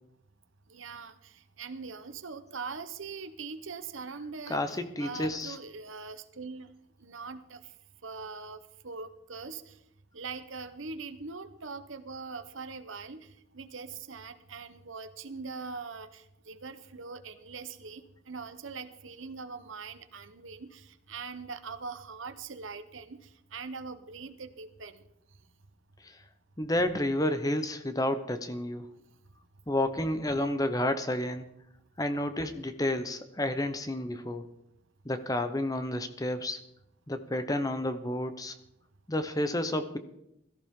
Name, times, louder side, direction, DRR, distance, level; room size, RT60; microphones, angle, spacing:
voice 1, 0.7-6.7 7.0-7.6 8.0-9.7 10.1-13.3 13.5-23.2 23.5-25.0, right 4 dB, 70° right, 11 dB, 1.0 m, -42 dB
voice 2, 4.5-5.6 26.0-26.2 26.6-28.9 29.7-31.5 32.0-34.5 35.0-36.6 37.1-38.5 39.1-40.0, left 1 dB, 15° left, 10 dB, 0.8 m, -30 dB
16.5 x 14.0 x 3.7 m, 0.80 s
head